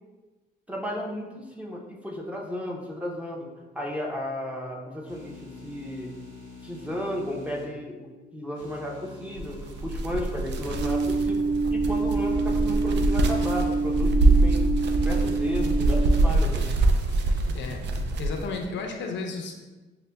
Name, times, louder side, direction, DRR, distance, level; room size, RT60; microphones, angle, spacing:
voice 1, 0.7-3.5 3.7-6.2 6.6-14.7 14.9-16.7, left 1 dB, 5° right, -1 dB, 0.6 m, -34 dB
sound 1, 5.0-7.7 8.5-10.9 11.8-13.9 14.7-17.8, equal, 85° right, 0.8 m, -46 dB
sound 2, 9.4-18.6, right 2 dB, 65° right, 0.4 m, -24 dB
sound 3, 10.7-16.2, right 4 dB, 25° right, 1.3 m, -27 dB
voice 2, 17.5-19.6, left 4 dB, 70° left, 2 dB, 0.6 m, -34 dB
6.4 x 2.1 x 2.2 m, 1.2 s
cardioid pair, 90°, 20 cm